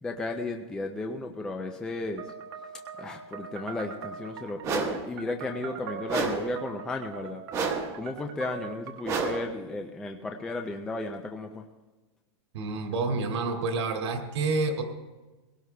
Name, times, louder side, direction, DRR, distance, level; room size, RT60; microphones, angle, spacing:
voice 1, 0.0-2.3 3.0-7.4 7.9-11.6, left 2 dB, 5° left, 4 dB, 0.3 m, -34 dB
sound 1, 2.2-9.6, right 7 dB, 50° right, 1.2 m, -41 dB
sound 2, 4.6-5.1 6.1-6.6 7.5-8.0 9.0-9.5, right 4 dB, 20° right, 1.1 m, -29 dB
voice 2, 12.5-14.8, right 3 dB, 70° right, 3 dB, 2.1 m, -28 dB
21.5 x 17.5 x 2.2 m, 1.2 s
supercardioid pair, 170°, 15 cm